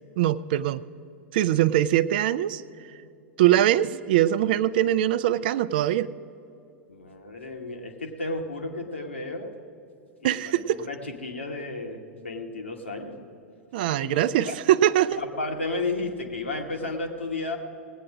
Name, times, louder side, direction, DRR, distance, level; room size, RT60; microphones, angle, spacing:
voice 1, 0.2-0.8 1.3-2.6 3.4-6.1 10.2-10.8 13.7-15.2, right 12 dB, 55° right, 16 dB, 0.4 m, -22 dB
voice 2, 6.9-9.5 10.2-13.2 14.0-14.6 15.1-17.6, left 2 dB, 80° left, 2 dB, 1.4 m, -33 dB
19.0 x 8.6 x 4.9 m, 2.7 s
figure-of-eight pair, 90°, 6 cm